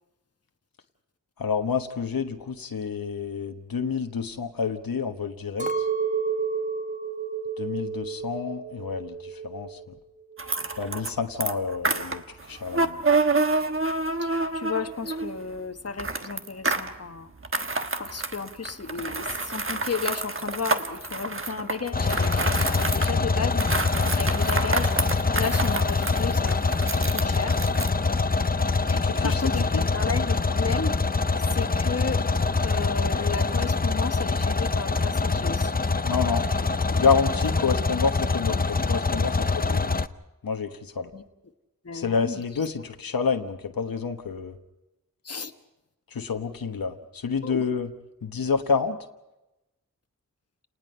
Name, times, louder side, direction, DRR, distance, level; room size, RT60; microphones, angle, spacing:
voice 1, 1.4-5.9 7.6-9.8 10.7-13.1 28.9-29.8 36.1-36.4 37.0-39.9 40.4-41.1 41.9-44.6 46.1-47.9 48.2-49.0, left 5 dB, 90° left, 6 dB, 1.3 m, -28 dB
Chink clink, 5.6-10.0 10.2-11.0, right 5 dB, 20° right, 1.4 m, -31 dB
sound 1, 10.4-11.1 11.4-15.4 16.0-17.0 17.4-23.2 23.5-27.9, right 3 dB, 40° right, 1.3 m, -28 dB
voice 2, 14.2-17.3 18.0-27.6 28.9-29.7 29.9-30.9 31.5-32.2 32.6-35.8 36.4-36.6 36.9-37.0 41.1-41.2 41.8-42.4 45.2-45.5 47.4-47.7, left 5 dB, 45° left, 6 dB, 1.3 m, -33 dB
sound 2, 21.9-40.1, left 3 dB, 25° left, 0.7 m, -24 dB
29.5 x 19.5 x 5.6 m, 0.97 s
wide cardioid pair, 60°, 34 cm